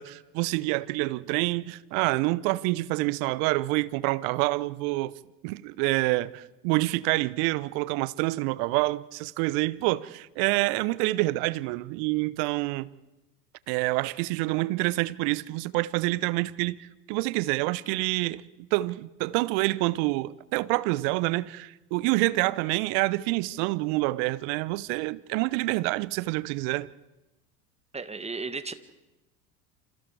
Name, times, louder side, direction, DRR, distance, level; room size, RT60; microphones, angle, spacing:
voice 1, 0.0-5.1 5.4-12.9 13.7-18.4 18.7-26.9, right 21 dB, 50° right, 0.9 m, -27 dB
voice 2, 27.9-28.7, right 4 dB, 15° right, 1.6 m, -34 dB
28.0 x 27.5 x 4.9 m
figure-of-eight pair, 80°, 47 cm